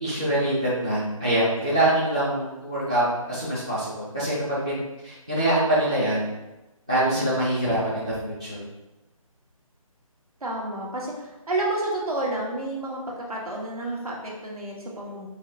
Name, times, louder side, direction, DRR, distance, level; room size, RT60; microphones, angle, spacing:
voice 1, 0.0-6.2 6.9-8.6, right 1 dB, 10° right, -10 dB, 0.3 m, -24 dB
voice 2, 10.4-13.0 13.3-15.3, right 2 dB, 85° right, -2 dB, 1.4 m, -30 dB
5.5 x 2.2 x 3.9 m, 1.0 s
figure-of-eight pair, 160°, 18 cm